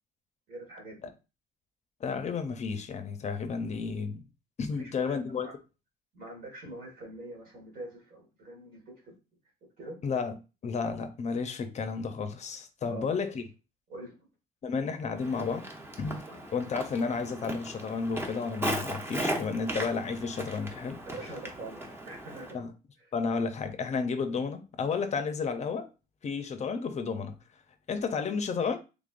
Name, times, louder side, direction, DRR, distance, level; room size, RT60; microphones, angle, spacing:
voice 1, 0.5-1.0 4.7-5.5 6.1-9.2 9.8-10.0 12.8-13.1 13.9-14.3 16.3-16.4 21.0-22.6, right 2 dB, 65° right, 1.7 m, -44 dB
voice 2, 2.0-4.2 4.6-5.5 10.0-10.3 10.6-13.4 14.6-15.7 16.0-16.2 16.5-21.0 22.5-22.7 23.1-25.9 26.2-27.3 27.9-28.8, left 5 dB, 45° left, 0.6 m, -32 dB
Walk footsteps, 15.2-22.5, right 1 dB, 15° right, 0.8 m, -37 dB
3.6 x 3.4 x 2.5 m
cardioid pair, 110°, 17 cm